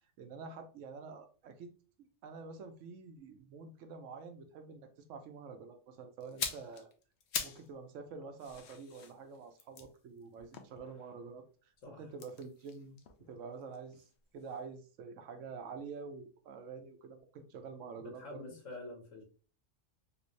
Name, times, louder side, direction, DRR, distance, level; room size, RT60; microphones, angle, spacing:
voice 1, 0.2-1.7 2.0-6.9 7.4-11.4 12.0-13.0 13.3-14.1 14.3-18.4, right 5 dB, 85° right, 7 dB, 1.0 m, -47 dB
sound 1, 6.2-7.7 8.0-11.3 12.1-14.1 14.4-14.6, left 6 dB, 70° left, 0.9 m, -43 dB
voice 2, 17.9-19.2, left 2 dB, 85° left, -1 dB, 1.6 m, -47 dB
3.5 x 2.5 x 3.0 m, 0.38 s
omnidirectional pair, 1.3 m